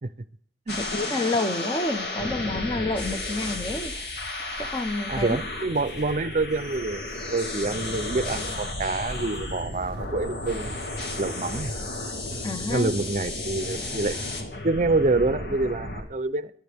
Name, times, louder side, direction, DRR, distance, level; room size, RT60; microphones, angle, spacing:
sound 1, 0.7-16.0, left 2 dB, 70° left, 2.1 m, -33 dB
voice 1, 0.8-3.9 4.6-5.4 12.4-12.9, left 2 dB, 25° left, 8 dB, 0.8 m, -29 dB
sound 2, 3.4-14.2, right 1 dB, 90° left, 6.0 m, -51 dB
voice 2, 5.1-11.7 12.7-14.2 14.6-16.5, right 3 dB, 40° right, 15 dB, 0.6 m, -27 dB
23.0 x 10.5 x 3.5 m, 0.64 s
head